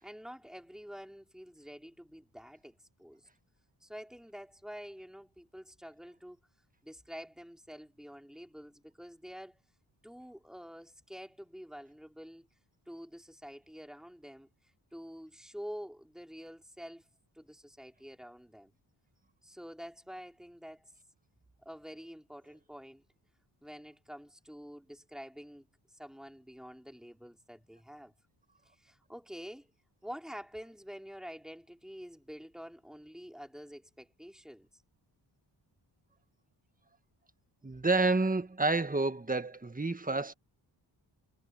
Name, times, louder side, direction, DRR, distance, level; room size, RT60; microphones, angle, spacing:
voice 1, 0.0-3.3 3.8-6.4 6.8-9.6 10.0-12.5 12.9-14.5 14.9-17.0 17.3-18.7 19.4-20.9 21.6-23.0 23.6-28.1 28.6-29.7 30.0-34.8, equal, ahead, 4.4 m, -48 dB
voice 2, 37.6-40.3, right 3 dB, 20° right, 1.7 m, -29 dB
cardioid pair, 60°, 46 cm